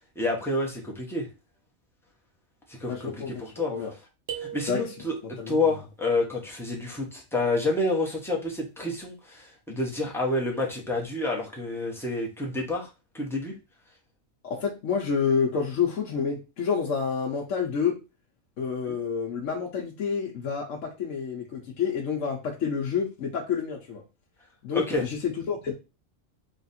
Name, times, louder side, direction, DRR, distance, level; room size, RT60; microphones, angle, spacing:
voice 1, 0.2-1.3 2.8-3.7 4.4-5.1 5.5-12.9 13.1-13.5 18.9-19.0 24.7-25.0, left 2 dB, ahead, -2 dB, 0.8 m, -28 dB
voice 2, 2.9-3.9 4.7-4.9 5.4-5.7 14.4-18.0 18.6-24.0 24.6-25.7, left 6 dB, 75° left, -1 dB, 1.1 m, -29 dB
sound 1, 4.3-5.4, right 9 dB, 55° right, 1.0 m, -38 dB
3.5 x 2.4 x 4.1 m, 0.28 s
omnidirectional pair, 1.3 m